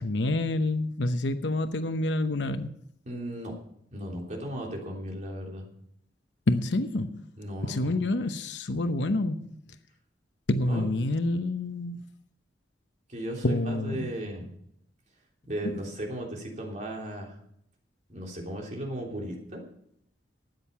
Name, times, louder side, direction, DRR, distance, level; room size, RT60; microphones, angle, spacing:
voice 1, 0.0-2.7 6.5-7.2 7.6-9.8 10.5-12.0 13.4-14.1 15.6-15.7, left 2 dB, 80° left, 9 dB, 0.9 m, -28 dB
voice 2, 3.0-3.5 3.9-5.7 7.4-8.0 10.7-10.9 13.1-14.5 15.4-17.4 18.1-19.6, right 1 dB, 40° right, -1 dB, 3.3 m, -36 dB
13.0 x 9.3 x 5.7 m, 0.71 s
head